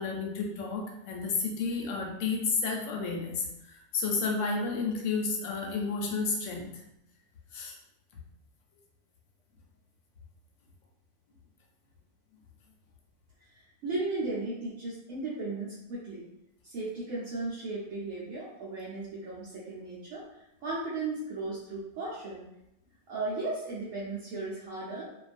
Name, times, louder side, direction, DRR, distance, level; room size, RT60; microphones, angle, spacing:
voice 1, 0.0-6.8 7.5-7.8, left 4 dB, 65° left, 1 dB, 0.8 m, -31 dB
voice 2, 13.8-16.3 16.6-20.2 20.6-22.5 23.1-25.1, right 2 dB, 70° right, -7 dB, 1.0 m, -35 dB
2.5 x 2.3 x 2.4 m, 0.85 s
omnidirectional pair, 1.6 m